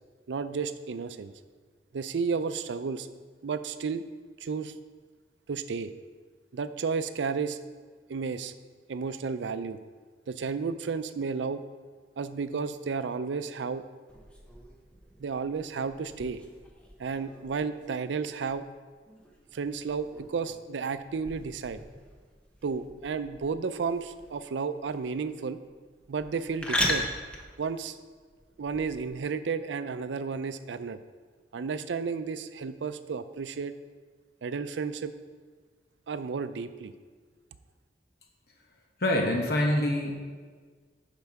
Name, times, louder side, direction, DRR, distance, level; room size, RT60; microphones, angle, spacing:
voice 1, 0.3-1.3 1.9-3.1 3.4-4.0 4.4-4.7 5.5-5.9 6.5-7.6 8.1-8.5 8.9-9.8 10.3-11.6 12.2-13.8 15.2-16.4 17.0-18.6 19.5-21.8 22.6-25.6 26.1-27.1 27.6-28.0 28.6-31.0 31.5-33.7 34.4-35.1 36.1-36.9, right 5 dB, 90° right, 12 dB, 0.4 m, -32 dB
sound 1, 14.1-29.1, left 1 dB, 5° left, 0.7 m, -39 dB
voice 2, 39.0-40.1, left 1 dB, 60° left, 1 dB, 1.0 m, -25 dB
10.5 x 4.6 x 4.7 m, 1.5 s
head